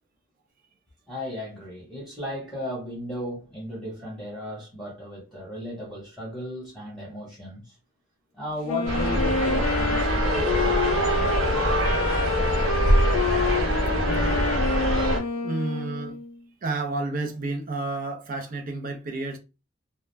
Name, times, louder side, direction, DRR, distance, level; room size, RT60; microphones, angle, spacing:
voice 1, 1.1-7.8 8.3-11.8, left 1 dB, ahead, 0.9 m, -35 dB
Wind instrument woodwind instrument, 8.6-16.4, left 4 dB, 90° left, 0.4 m, -28 dB
sound 1, 8.9-15.2, equal, 85° right, 1.0 m, -23 dB
voice 2, 15.4-16.2 16.6-19.4, right 3 dB, 45° right, 0.5 m, -30 dB
2.3 x 2.1 x 3.1 m
head